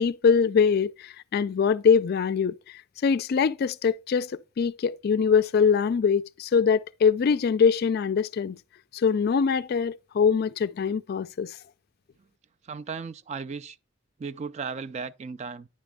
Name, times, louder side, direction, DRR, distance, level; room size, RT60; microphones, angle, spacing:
voice 1, 0.0-8.6 8.9-11.6, left 6 dB, 50° left, 0.3 m, -23 dB
voice 2, 12.6-13.8 14.2-15.7, right 5 dB, 35° right, 0.3 m, -35 dB
9.6 x 5.1 x 3.5 m
head